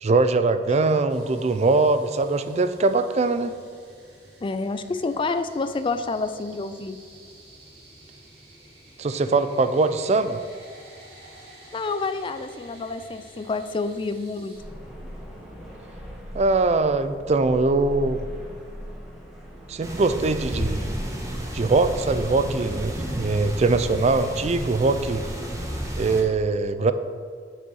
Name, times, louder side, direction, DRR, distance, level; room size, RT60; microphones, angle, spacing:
voice 1, 0.0-3.5 9.0-10.4 16.3-18.3 19.7-20.8 21.5-25.2 26.0-26.9, right 3 dB, 40° right, 11 dB, 0.4 m, -22 dB
sound 1, 1.1-14.6, right 1 dB, 65° right, 2.4 m, -49 dB
voice 2, 4.4-7.0 11.7-14.5, left 3 dB, 30° left, 11 dB, 0.4 m, -28 dB
sound 2, 14.5-25.4, equal, ahead, 1.7 m, -41 dB
sound 3, 19.8-26.2, equal, 20° right, 1.3 m, -31 dB
7.4 x 5.4 x 6.2 m, 2.1 s
head